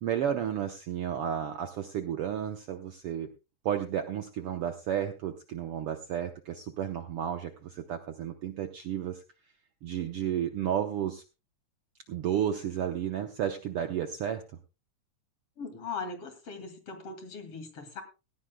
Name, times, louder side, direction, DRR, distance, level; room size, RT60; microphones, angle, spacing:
voice 1, 0.0-3.3 3.6-9.2 9.8-11.2 12.1-14.4, right 9 dB, 70° right, 6 dB, 1.4 m, -32 dB
voice 2, 15.6-18.0, left 4 dB, 50° left, 7 dB, 3.0 m, -39 dB
17.5 x 15.5 x 2.2 m, 0.30 s
omnidirectional pair, 3.5 m